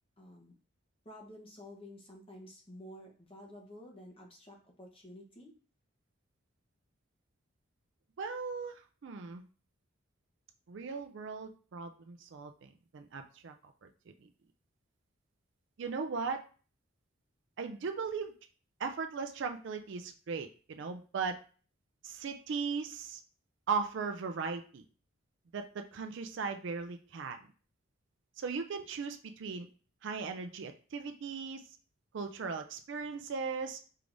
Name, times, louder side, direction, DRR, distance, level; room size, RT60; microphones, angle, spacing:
voice 1, 0.2-0.5 1.0-5.5, left 1 dB, 25° left, 0 dB, 0.9 m, -51 dB
voice 2, 8.2-9.4 10.7-13.5 13.8-13.9 14.2-14.3 15.8-16.4 17.6-18.3 18.8-21.4 22.0-23.2 23.7-24.8 25.5-27.4 28.4-29.7 30.0-31.6 32.1-33.8, right 5 dB, 60° right, 6 dB, 0.4 m, -38 dB
4.7 x 3.3 x 2.6 m, 0.39 s
head